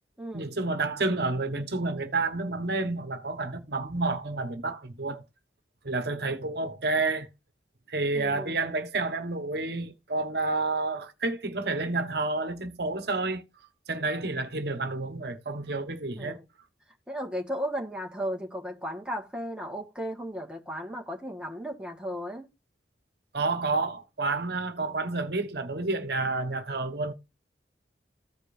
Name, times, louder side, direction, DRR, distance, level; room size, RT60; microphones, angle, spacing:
voice 1, 0.3-5.2 5.8-7.3 7.9-13.4 13.9-16.4 23.3-27.1, right 3 dB, 65° right, 1.2 m, -30 dB
voice 2, 8.1-8.5 16.2-16.4 17.1-22.5, equal, 5° right, 1.5 m, -35 dB
15.0 x 5.1 x 2.6 m
head